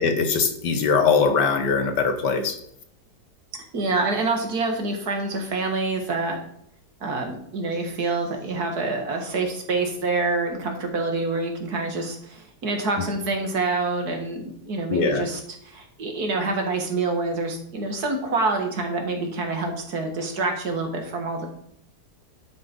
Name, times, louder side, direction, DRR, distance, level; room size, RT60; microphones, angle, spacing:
voice 1, 0.0-2.6 14.9-15.2, left 5 dB, 75° left, 7 dB, 1.9 m, -21 dB
voice 2, 3.5-6.4 7.0-21.5, right 3 dB, 60° right, 3 dB, 2.3 m, -27 dB
11.5 x 6.0 x 5.4 m, 0.72 s
omnidirectional pair, 1.8 m